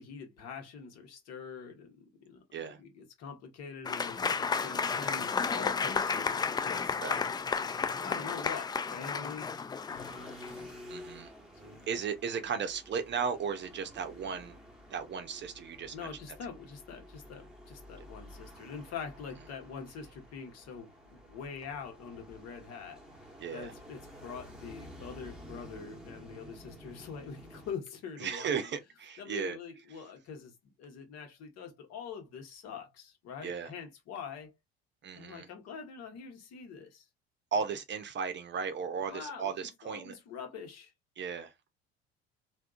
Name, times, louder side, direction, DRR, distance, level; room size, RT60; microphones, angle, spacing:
voice 1, 0.0-7.3 8.0-9.5 11.6-11.9 15.9-23.3 23.5-28.7 29.2-30.5 30.8-34.5 35.2-37.1 39.1-40.9, left 6 dB, 55° left, 1.4 m, -44 dB
Applause / Crowd, 3.8-10.7, left 5 dB, 15° left, 0.3 m, -32 dB
sound 1, 9.9-27.7, equal, ahead, 1.3 m, -51 dB
voice 2, 10.9-11.3 11.9-14.6 14.9-16.1 23.4-23.7 28.2-29.6 33.4-33.7 35.0-35.5 37.5-40.1 41.2-41.5, right 6 dB, 35° right, 0.8 m, -35 dB
3.5 x 2.6 x 2.4 m
hypercardioid pair, 65°, 31 cm